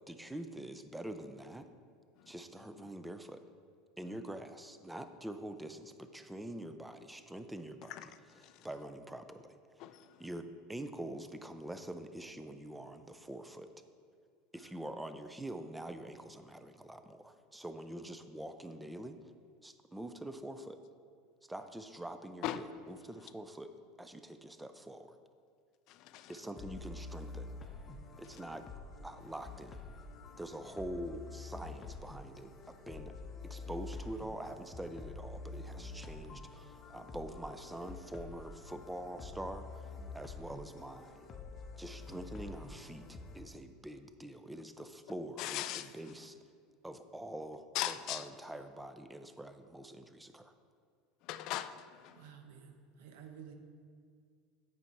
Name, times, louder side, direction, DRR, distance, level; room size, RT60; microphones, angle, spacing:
voice 1, 0.1-1.7 2.3-3.4 4.0-8.1 8.4-9.6 10.2-13.7 14.5-19.2 19.6-20.8 21.5-25.2 26.3-27.5 28.2-28.7 29.0-29.8 30.4-33.2 33.4-39.7 40.1-41.3 41.8-46.4 46.8-50.5, right 1 dB, 5° right, 0.5 m, -45 dB
voice 2, 9.8-10.2 22.4-22.7 25.9-26.3 45.4-45.9 47.7-48.3 51.2-52.4, left 13 dB, 55° left, 0.4 m, -39 dB
sound 1, 26.6-43.4, left 3 dB, 30° left, 0.7 m, -48 dB
voice 3, 52.1-53.6, right 8 dB, 85° right, 0.9 m, -52 dB
8.8 x 5.6 x 4.6 m
supercardioid pair, 130°, 0 cm